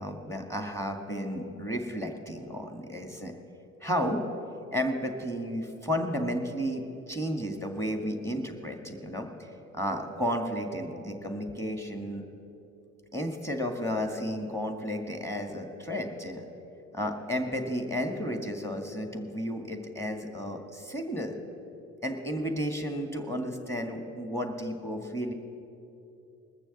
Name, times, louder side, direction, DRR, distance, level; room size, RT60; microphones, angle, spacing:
voice 1, 0.0-3.3 3.8-4.2 4.7-12.2 13.1-16.4 16.9-21.3 22.0-25.3, equal, 5° left, 4 dB, 2.0 m, -33 dB
20.0 x 6.9 x 7.2 m, 2.8 s
hypercardioid pair, 60°, 41 cm